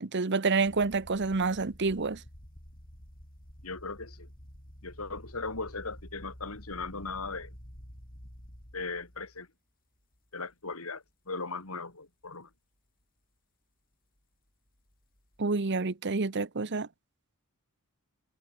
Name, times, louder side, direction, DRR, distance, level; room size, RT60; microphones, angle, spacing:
voice 1, 0.0-2.2 15.4-16.9, right 4 dB, 55° right, 0.9 m, -28 dB
sound 1, 0.6-9.4 10.1-10.5 11.1-11.2 14.8-15.4, equal, 40° left, 6.8 m, -50 dB
voice 2, 3.6-4.3 4.8-7.5 8.7-9.5 10.3-12.5, left 3 dB, 85° left, 3.8 m, -38 dB
head